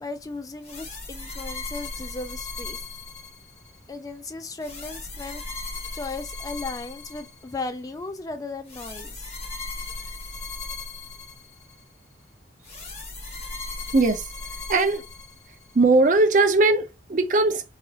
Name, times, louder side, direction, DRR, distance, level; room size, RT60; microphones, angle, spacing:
voice 1, 0.0-2.8 3.9-9.3, left 3 dB, 20° left, 0.3 m, -36 dB
sound 1, 0.6-3.8 4.6-7.7 8.7-11.8 12.6-15.7, left 3 dB, 40° left, 1.1 m, -37 dB
voice 2, 13.9-14.3 14.7-15.0 15.7-17.6, right 3 dB, 45° right, 0.5 m, -19 dB
4.1 x 2.4 x 2.7 m
head